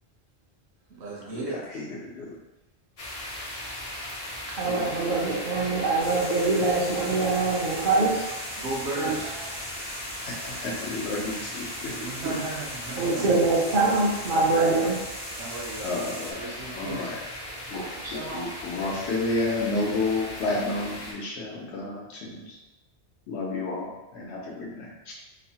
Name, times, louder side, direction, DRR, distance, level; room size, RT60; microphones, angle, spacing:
voice 1, 1.0-1.6 8.6-9.4 11.9-13.3 15.3-16.1 16.4-17.1, right 2 dB, 80° right, -5 dB, 1.0 m, -35 dB
voice 2, 1.5-2.4 4.7-5.0 10.3-11.9 15.8-17.2 17.7-17.8 18.1-22.6 23.3-24.9, left 2 dB, 80° left, -3 dB, 1.0 m, -31 dB
sound 1, 3.0-21.1, left 1 dB, 45° left, 0.5 m, -38 dB
voice 3, 4.6-8.3 9.0-9.2 13.0-15.1 17.7-18.5, right 3 dB, 55° right, -6 dB, 0.7 m, -24 dB
sound 2, 6.0-16.3, equal, 10° right, 0.5 m, -41 dB
3.0 x 2.0 x 2.7 m, 0.95 s
omnidirectional pair, 1.1 m